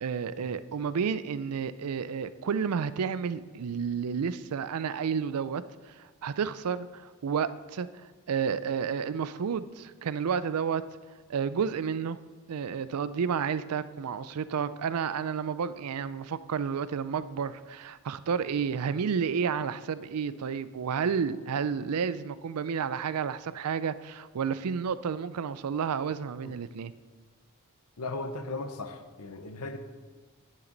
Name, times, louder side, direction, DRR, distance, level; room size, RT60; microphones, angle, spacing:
voice 1, 0.0-7.9 8.3-10.8 11.3-12.2 12.5-26.9, right 6 dB, 80° right, 15 dB, 0.4 m, -31 dB
voice 2, 28.0-29.8, left 3 dB, 90° left, 8 dB, 0.9 m, -37 dB
9.7 x 8.8 x 4.0 m, 1.4 s
head